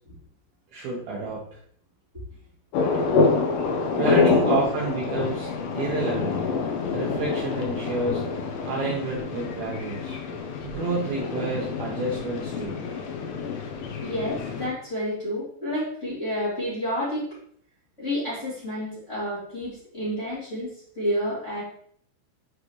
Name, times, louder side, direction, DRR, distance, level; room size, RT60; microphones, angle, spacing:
voice 1, 0.7-1.4 4.0-5.5 5.8-6.4 6.9-8.2 8.7-10.2 10.6-12.8, right 3 dB, 70° right, -4 dB, 2.5 m, -29 dB
sound 1, 2.7-14.7, left 4 dB, 85° left, 3.4 m, -27 dB
voice 2, 3.9-4.3 14.0-17.3 18.0-21.6, equal, 20° left, -9 dB, 2.4 m, -30 dB
8.6 x 4.8 x 3.2 m, 0.62 s
omnidirectional pair, 5.4 m